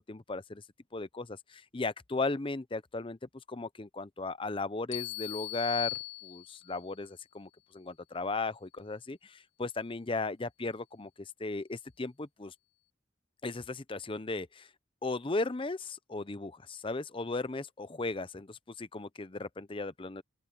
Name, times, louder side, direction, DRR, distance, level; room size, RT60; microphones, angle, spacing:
voice 1, 0.1-0.6 0.9-3.2 3.5-12.5 13.4-14.7 15.0-20.2, left 3 dB, 25° left, 0.6 m, -36 dB
sound 1, 4.9-6.8, left 20 dB, 65° left, 0.5 m, -38 dB
open air
head